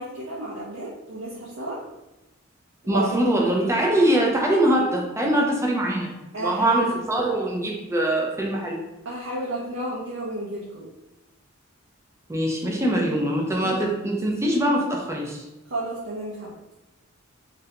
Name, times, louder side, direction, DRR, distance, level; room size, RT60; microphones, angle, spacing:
voice 1, 0.0-1.8 2.8-3.3 6.3-6.8 9.0-10.9 13.6-13.8 15.7-16.6, right 1 dB, 60° right, -6 dB, 0.6 m, -32 dB
voice 2, 2.9-8.8 12.3-15.4, right 1 dB, 15° right, -1 dB, 0.5 m, -23 dB
3.2 x 2.5 x 2.8 m, 0.98 s
head